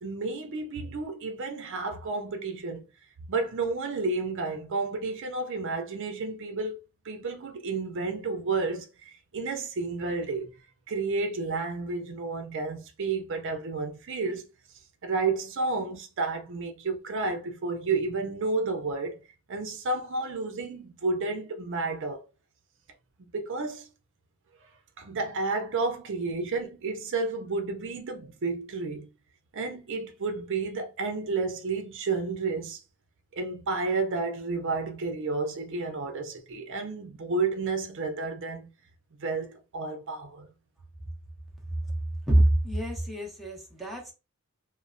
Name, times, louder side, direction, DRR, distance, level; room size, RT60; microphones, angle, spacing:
voice 1, 0.0-2.8 3.3-6.8 7.0-10.5 10.9-14.5 15.0-19.2 19.5-22.2 23.3-23.9 25.0-29.1 29.5-32.8 33.3-38.7 39.2-40.5, right 3 dB, 60° right, 0.5 m, -31 dB
voice 2, 42.3-44.1, right 1 dB, ahead, 0.7 m, -25 dB
3.0 x 2.0 x 2.5 m
head